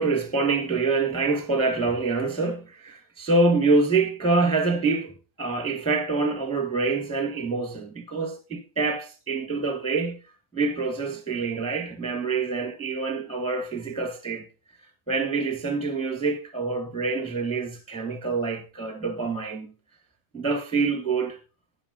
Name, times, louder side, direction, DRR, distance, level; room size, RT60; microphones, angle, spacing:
voice 1, 0.0-10.2 10.5-14.5 15.1-19.7 20.3-21.4, right 3 dB, 5° left, 1.4 m, -26 dB
18.0 x 6.5 x 2.8 m
omnidirectional pair, 3.7 m